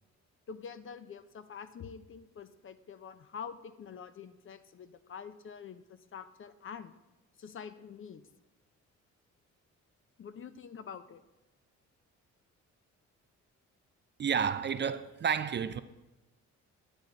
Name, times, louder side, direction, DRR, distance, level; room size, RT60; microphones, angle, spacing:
voice 1, 0.5-6.9 7.4-8.3 10.2-11.2, left 6 dB, 45° left, 0.6 m, -46 dB
voice 2, 14.2-15.8, right 7 dB, 35° right, 0.5 m, -30 dB
10.5 x 8.9 x 3.9 m
cardioid pair, 90°, 30 cm